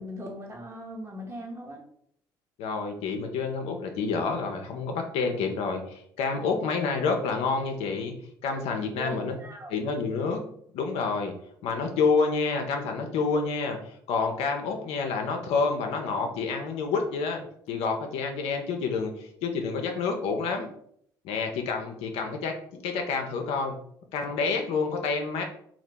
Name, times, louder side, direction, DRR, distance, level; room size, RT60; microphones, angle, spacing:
voice 1, 0.0-1.8 8.9-9.7, equal, 25° right, 1 dB, 1.0 m, -38 dB
voice 2, 2.6-8.2 8.4-9.4 9.7-10.4 10.7-11.3 11.6-13.8 14.1-20.7 21.2-22.5 22.8-23.8 24.1-25.4, left 4 dB, 70° left, 4 dB, 0.5 m, -28 dB
2.8 x 2.4 x 3.3 m, 0.67 s
hypercardioid pair, 60°, 11 cm